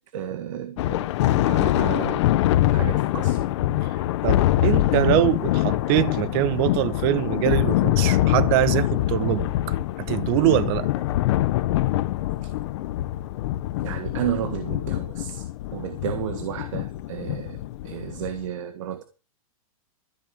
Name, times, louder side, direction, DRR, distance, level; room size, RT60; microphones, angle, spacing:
voice 1, 0.1-2.3 2.7-3.8 13.8-15.4 15.7-19.0, right 10 dB, 60° right, 1.6 m, -32 dB
Thunder, 0.8-18.5, left 14 dB, 50° left, 0.9 m, -24 dB
voice 2, 4.2-9.5 10.0-10.9, right 14 dB, 40° right, 1.0 m, -23 dB
14.0 x 5.4 x 9.0 m
hypercardioid pair, 150°, 18 cm